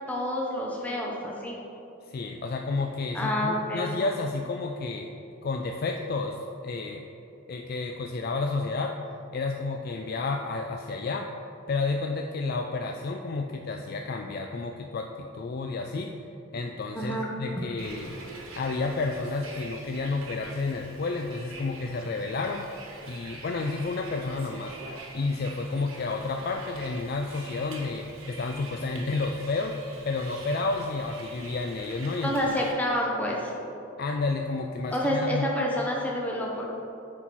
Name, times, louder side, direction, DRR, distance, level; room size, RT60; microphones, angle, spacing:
voice 1, 0.1-1.6 3.1-3.9 16.9-17.3 32.2-33.5 34.9-36.7, equal, 5° left, -3 dB, 0.7 m, -28 dB
voice 2, 2.1-5.1 5.4-7.0 7.5-9.0 9.3-11.3 11.7-16.2 16.5-18.2 18.6-22.7 23.0-24.8 25.1-29.8 30.0-32.5 34.0-35.5, left 3 dB, 45° left, 3 dB, 0.3 m, -31 dB
Bus, 17.8-32.7, right 2 dB, 85° right, 1.2 m, -45 dB
9.8 x 4.2 x 4.5 m, 2.9 s
head